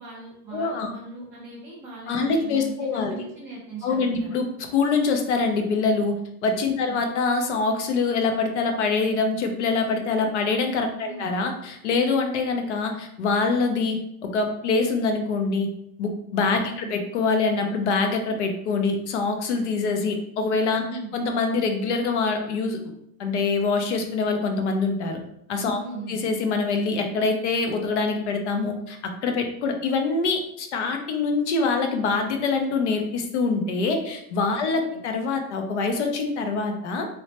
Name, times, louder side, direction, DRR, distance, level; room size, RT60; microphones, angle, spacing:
voice 1, 0.0-4.4 6.8-7.0 11.1-11.3 16.7-16.9 20.9-21.1 25.8-26.2 34.7-35.0, right 3 dB, 5° right, -13 dB, 0.4 m, -39 dB
voice 2, 0.5-0.9 2.1-3.2 3.8-4.5 4.7-6.1 6.4-14.0 14.2-15.7 16.0-20.8 21.1-22.8 23.2-25.2 25.5-25.8 26.1-29.0 29.2-37.1, left 4 dB, 55° left, 4 dB, 0.5 m, -24 dB
3.1 x 2.0 x 2.7 m, 0.77 s
supercardioid pair, 175°, 44 cm